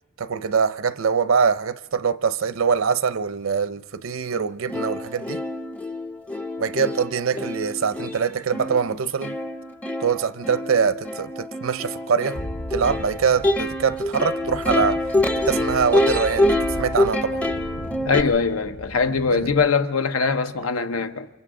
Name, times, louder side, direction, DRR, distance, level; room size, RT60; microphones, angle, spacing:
voice 1, 0.2-5.4 6.6-9.4 10.0-12.4 12.7-15.0 15.5-17.4 19.3-19.5, right 6 dB, 75° right, 0.6 m, -23 dB
Plucked string instrument, 4.3-4.4 4.7-18.2, left 1 dB, 5° left, 0.6 m, -26 dB
sound 1, 12.3-19.7, equal, 55° left, 1.0 m, -37 dB
voice 2, 18.0-21.3, left 5 dB, 90° left, 0.9 m, -22 dB
28.5 x 26.0 x 3.8 m
head